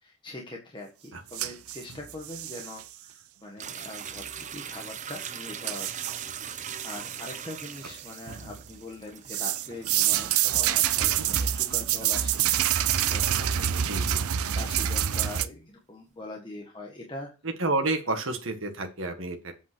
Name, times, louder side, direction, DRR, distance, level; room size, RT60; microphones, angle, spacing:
voice 1, 0.0-12.4 13.1-17.3, left 2 dB, 20° left, -1 dB, 1.5 m, -42 dB
sound 1, 1.3-2.8 5.2-5.3 5.7-6.2 6.6-7.4 7.8-8.6 9.3-15.5, right 10 dB, 80° right, 0.6 m, -27 dB
sound 2, 3.6-10.9 11.4-11.5 12.4-12.5 14.2-14.3, right 8 dB, 35° right, 0.6 m, -41 dB
voice 2, 17.4-19.5, right 2 dB, 60° right, 4 dB, 1.6 m, -30 dB
8.3 x 5.3 x 6.2 m, 0.30 s
head